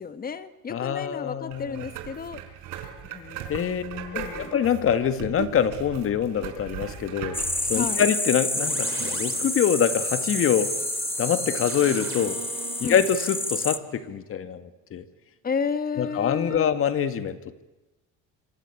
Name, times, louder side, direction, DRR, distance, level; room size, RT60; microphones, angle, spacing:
voice 1, 0.0-2.4 3.0-4.5 7.7-8.0 12.8-13.0 15.4-16.7, left 5 dB, 30° left, 11 dB, 1.7 m, -32 dB
voice 2, 0.7-1.9 3.5-3.8 4.1-7.4 7.7-10.7 11.2-12.4 12.8-15.0 16.0-17.4, left 8 dB, 45° left, 11 dB, 1.9 m, -25 dB
sound 1, 1.5-8.0, right 10 dB, 75° right, 4.9 m, -38 dB
sound 2, 7.3-13.8, left 2 dB, 5° left, 1.2 m, -29 dB
sound 3, 8.6-14.4, right 6 dB, 45° right, 2.9 m, -39 dB
26.5 x 25.5 x 8.5 m, 1.1 s
cardioid pair, 115°, 30 cm